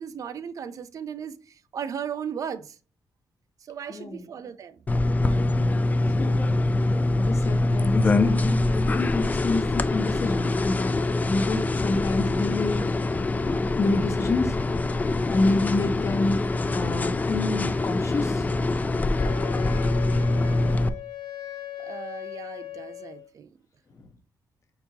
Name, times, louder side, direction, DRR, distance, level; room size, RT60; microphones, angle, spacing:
voice 1, 0.0-2.8 3.7-4.8 21.8-23.5, right 7 dB, 55° right, 0.4 m, -36 dB
voice 2, 3.9-4.3 5.2-5.8 6.1-6.5 7.2-13.2 13.4-14.6 15.3-18.5 24.0-24.1, left 2 dB, 45° left, 0.8 m, -28 dB
sound 1, 4.9-20.9, left 2 dB, 25° left, 0.3 m, -24 dB
Wind instrument woodwind instrument, 19.2-23.3, left 12 dB, 75° left, 0.9 m, -38 dB
4.5 x 2.8 x 4.0 m
cardioid pair, 105°, 7 cm